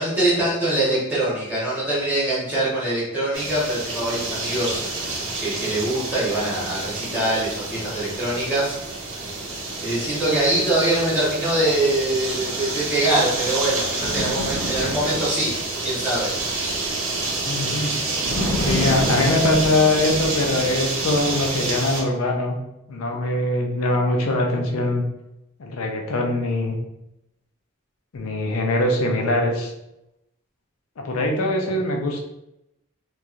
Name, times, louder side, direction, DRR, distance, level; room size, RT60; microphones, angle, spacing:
voice 1, 0.0-4.8 5.4-8.7 9.8-15.5 15.8-16.3, right 1 dB, 10° right, -8 dB, 1.1 m, -23 dB
sound 1, 3.3-22.0, right 3 dB, 70° right, 0.7 m, -28 dB
Bird, 14.0-15.4 18.2-20.7, left 1 dB, 30° right, 0.8 m, -28 dB
voice 2, 17.5-18.0 18.5-22.6 22.9-25.0 25.6-26.7 28.1-29.7 31.0-32.2, left 1 dB, 85° left, 1 dB, 0.5 m, -22 dB
2.9 x 2.3 x 2.5 m, 0.88 s
head